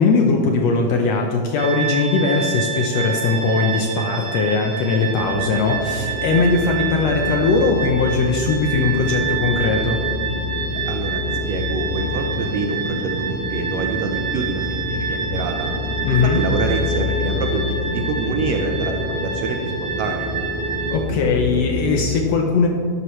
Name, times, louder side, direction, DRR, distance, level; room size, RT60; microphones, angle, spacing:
voice 1, 0.0-10.0 16.0-16.4 20.9-22.7, left 4 dB, 75° left, 2 dB, 1.5 m, -19 dB
sound 1, 1.6-21.0, right 6 dB, 55° right, 2.3 m, -28 dB
sound 2, 5.0-22.1, left 2 dB, 40° right, 2.9 m, -27 dB
voice 2, 10.8-11.2 11.5-15.7 16.2-20.3, right 4 dB, 90° right, 3 dB, 1.4 m, -26 dB
12.0 x 11.0 x 3.1 m, 2.2 s
omnidirectional pair, 3.9 m